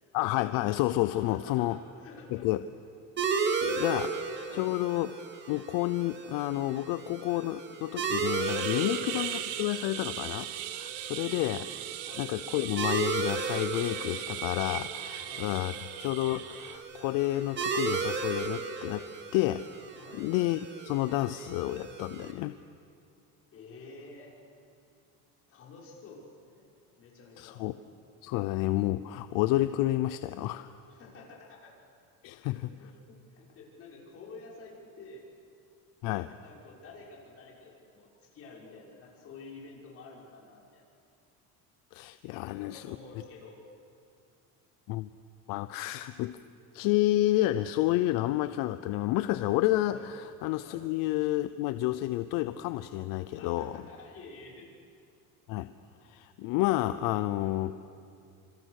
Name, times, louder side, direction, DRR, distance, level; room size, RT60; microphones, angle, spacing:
voice 1, 0.1-1.8 2.3-2.6 3.6-4.1 4.5-5.1 5.5-10.5 10.8-11.6 12.2-15.7 16.0-19.7 20.1-22.6 27.4-27.7 28.2-30.7 32.2-32.7 36.0-36.4 41.9-43.0 44.9-45.1 45.5-46.4 46.7-53.8 55.5-55.7 56.0-57.7, left 16 dB, 70° left, 13 dB, 0.8 m, -30 dB
voice 2, 1.1-2.5 4.0-4.2 4.5-4.7 8.8-9.0 11.2-11.6 12.0-12.3 15.2-15.4 20.0-20.2 23.5-24.4 25.5-26.7 27.0-27.7 30.9-31.7 32.4-35.3 36.4-40.8 42.6-43.6 49.9-50.1 50.6-50.8 53.3-54.7 54.9-55.0 57.4-57.5, left 3 dB, 40° left, -2 dB, 5.9 m, -50 dB
sound 1, 3.2-22.3, right 5 dB, 30° right, 2.3 m, -35 dB
sound 2, 8.4-16.8, right 13 dB, 80° right, 1.5 m, -39 dB
27.0 x 27.0 x 6.6 m, 2.4 s
cardioid pair, 160°, 35 cm